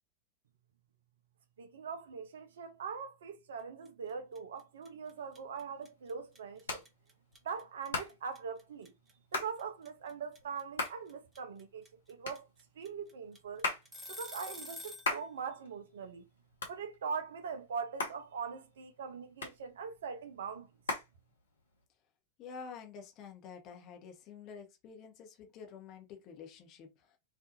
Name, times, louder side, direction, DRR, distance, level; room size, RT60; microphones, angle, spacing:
voice 1, 1.6-6.8 7.4-8.9 9.3-12.5 12.8-13.7 14.1-16.2 16.7-20.7, right 6 dB, 60° right, 0.4 m, -42 dB
sound 1, 3.8-4.1 4.3-15.1, left 1 dB, 15° right, 0.8 m, -48 dB
Hands, 5.2-21.8, left 3 dB, 70° left, 0.7 m, -42 dB
voice 2, 22.4-26.9, left 6 dB, 35° left, 0.8 m, -49 dB
2.5 x 2.3 x 2.6 m
figure-of-eight pair, 90°, 0 cm